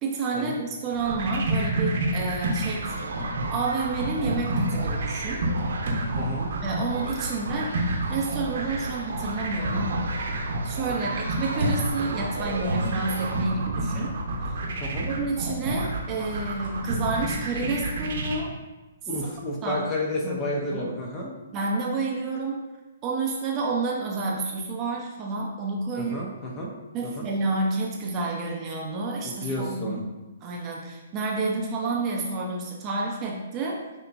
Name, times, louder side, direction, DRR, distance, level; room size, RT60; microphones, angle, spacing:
voice 1, 0.0-3.1 3.5-5.4 6.6-10.1 10.6-14.1 15.1-18.5 19.6-19.8 20.2-20.9 21.5-22.6 23.0-26.2 26.9-30.0 30.4-33.8, right 3 dB, 25° right, -2 dB, 0.8 m, -29 dB
sound 1, 0.9-18.4, right 2 dB, 60° right, 1.0 m, -29 dB
sound 2, 2.4-13.5, right 4 dB, 75° right, 0.5 m, -39 dB
voice 2, 6.2-6.5 11.0-11.2 14.8-15.1 19.1-21.3 26.0-26.7 27.2-27.3 29.2-30.0, left 1 dB, 20° left, -3 dB, 1.0 m, -31 dB
6.6 x 2.9 x 2.7 m, 1.1 s
hypercardioid pair, 135°, 0 cm